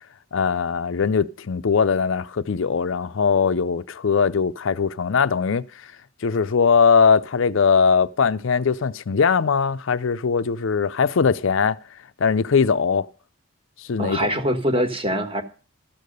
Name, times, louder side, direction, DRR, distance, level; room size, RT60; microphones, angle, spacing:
voice 1, 0.3-5.6 6.2-11.8 12.2-13.1 13.8-14.3, left 5 dB, 65° left, 0.5 m, -20 dB
voice 2, 14.0-15.4, equal, 25° right, 1.4 m, -23 dB
13.5 x 6.7 x 5.2 m
head